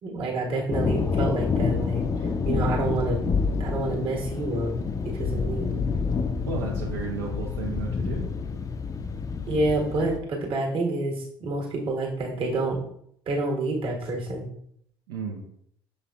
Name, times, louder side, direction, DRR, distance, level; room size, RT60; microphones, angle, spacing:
voice 1, 0.0-2.0 2.4-3.2 3.6-4.7 5.0-5.8 9.5-12.8 13.3-14.5, right 2 dB, 45° right, 0 dB, 1.4 m, -28 dB
sound 1, 0.7-10.2, left 5 dB, 25° left, 0.5 m, -28 dB
voice 2, 6.4-8.3 15.1-15.4, right 5 dB, 70° right, -2 dB, 0.7 m, -33 dB
6.6 x 3.3 x 2.3 m, 0.69 s
figure-of-eight pair, 55°, 13 cm